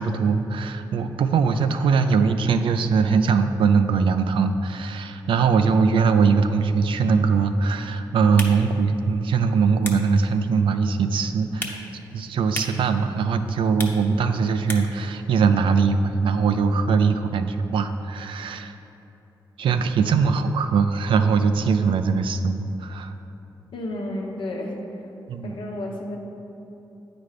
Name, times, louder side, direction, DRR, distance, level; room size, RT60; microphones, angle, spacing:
voice 1, 0.0-18.7 19.6-23.1 25.3-25.5, right 5 dB, 85° right, 9 dB, 0.4 m, -21 dB
sound 1, 8.2-15.1, left 2 dB, 25° left, 0.9 m, -39 dB
voice 2, 23.7-24.8 25.4-26.2, left 1 dB, 80° left, 1 dB, 0.9 m, -31 dB
9.1 x 4.2 x 4.9 m, 3.0 s
cardioid pair, 65°, 9 cm